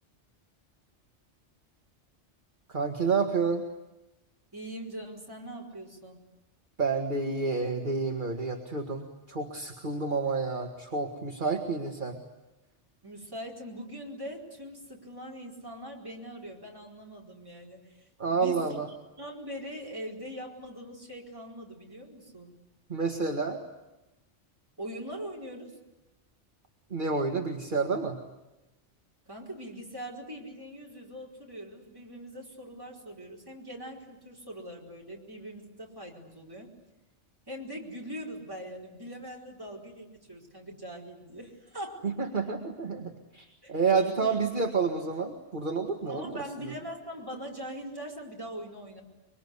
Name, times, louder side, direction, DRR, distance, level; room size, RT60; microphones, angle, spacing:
voice 1, 2.7-3.6 6.8-12.2 18.2-18.9 22.9-23.6 26.9-28.2 42.0-46.4, right 4 dB, 45° right, 3 dB, 2.0 m, -29 dB
voice 2, 4.5-6.3 13.0-18.8 19.2-22.5 24.8-25.7 29.3-36.7 37.5-42.1 43.6-43.8 44.2-44.4 46.0-49.0, equal, 20° right, -2 dB, 4.6 m, -42 dB
25.0 x 23.5 x 9.7 m, 0.97 s
omnidirectional pair, 1.2 m